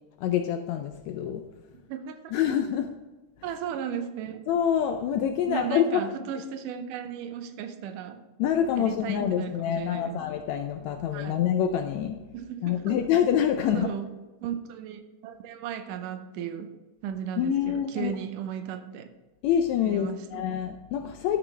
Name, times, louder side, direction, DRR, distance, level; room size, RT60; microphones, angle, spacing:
voice 1, 0.2-1.4 2.3-2.9 4.5-6.0 8.4-12.1 12.6-13.9 17.4-18.1 19.4-21.4, left 9 dB, 80° left, 5 dB, 1.6 m, -26 dB
voice 2, 1.7-2.5 3.4-4.4 5.5-8.2 8.8-10.2 11.1-11.4 12.3-13.0 13.7-14.1 14.4-16.7 17.0-19.1 19.8-20.4, right 9 dB, 85° right, 9 dB, 2.3 m, -36 dB
12.0 x 6.1 x 3.3 m, 1.2 s
omnidirectional pair, 3.6 m